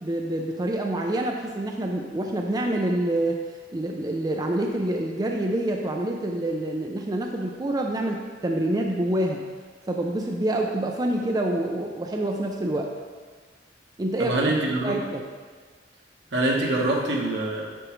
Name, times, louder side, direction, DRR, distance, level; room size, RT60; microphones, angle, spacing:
voice 1, 0.0-3.4 3.7-9.4 9.9-12.9 14.0-14.3 14.8-15.3, right 1 dB, 20° right, 1 dB, 0.4 m, -27 dB
voice 2, 14.2-15.0 16.3-17.6, right 2 dB, 75° right, -2 dB, 1.3 m, -24 dB
7.7 x 6.1 x 3.1 m, 1.5 s
head